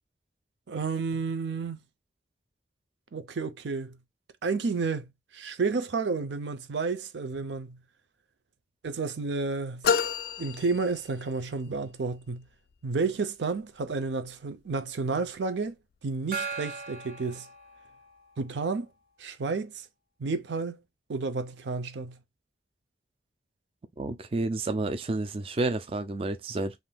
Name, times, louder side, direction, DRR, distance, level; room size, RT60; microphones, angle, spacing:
voice 1, 0.7-1.8 3.1-4.0 4.4-5.1 5.3-7.8 8.8-9.9 10.4-12.4 12.8-15.8 16.0-17.5 18.4-18.9 19.2-19.8 20.2-20.8 21.1-22.2, right 4 dB, 85° right, 0.5 m, -31 dB
sound 1, 9.8-11.5, left 7 dB, 55° left, 0.3 m, -29 dB
Gong, 16.3-18.3, right 5 dB, 55° right, 0.9 m, -38 dB
voice 2, 24.0-26.7, right 2 dB, 30° right, 0.4 m, -30 dB
3.5 x 2.5 x 2.2 m
head